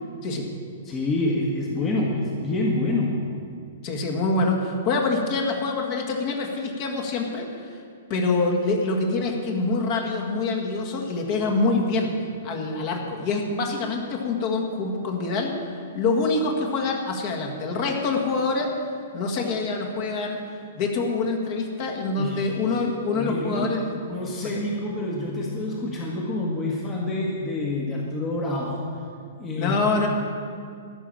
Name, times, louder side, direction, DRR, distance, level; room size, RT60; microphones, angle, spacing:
voice 1, 0.8-3.2 22.2-22.5 23.1-23.7 24.1-28.8 29.4-29.8, left 2 dB, 20° left, -2 dB, 1.5 m, -27 dB
voice 2, 3.8-7.8 8.1-12.1 12.4-15.5 15.9-18.7 19.1-20.4 20.7-23.9 24.4-24.6 29.5-30.1, left 3 dB, 40° left, 1 dB, 1.8 m, -25 dB
13.5 x 6.2 x 8.9 m, 2.3 s
figure-of-eight pair, 110°, 0 cm